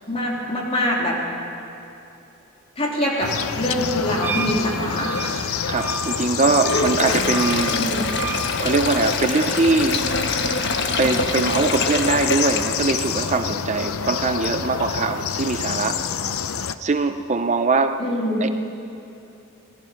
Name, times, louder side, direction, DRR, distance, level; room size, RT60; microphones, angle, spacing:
voice 1, 0.1-1.2 2.8-5.5 7.7-8.1 18.0-18.4, equal, 25° left, -3 dB, 3.4 m, -24 dB
sound 1, 3.2-16.8, left 7 dB, 80° left, 0.6 m, -28 dB
Wind instrument woodwind instrument, 4.2-8.5, right 4 dB, 10° right, 0.9 m, -31 dB
voice 2, 5.7-7.7 8.6-10.0 11.0-16.0 16.8-18.0 18.4-18.5, right 3 dB, 30° right, 7 dB, 0.5 m, -22 dB
Sink (filling or washing), 6.5-13.3, left 3 dB, 55° left, 1.3 m, -25 dB
25.0 x 18.0 x 5.8 m, 2.7 s
head